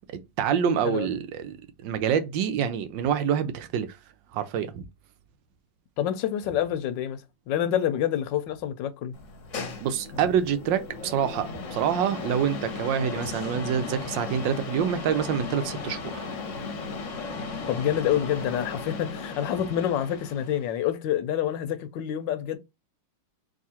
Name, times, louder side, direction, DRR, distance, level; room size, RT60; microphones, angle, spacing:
voice 1, 0.1-1.6 1.8-4.0 4.3-4.9 9.8-16.3, right 8 dB, 85° right, 1.4 m, -26 dB
voice 2, 6.0-7.2 7.5-9.1 17.7-22.6, left 10 dB, 80° left, 1.3 m, -27 dB
sound 1, 9.1-20.8, left 4 dB, 55° left, 1.0 m, -36 dB
3.7 x 2.7 x 4.2 m
omnidirectional pair, 2.0 m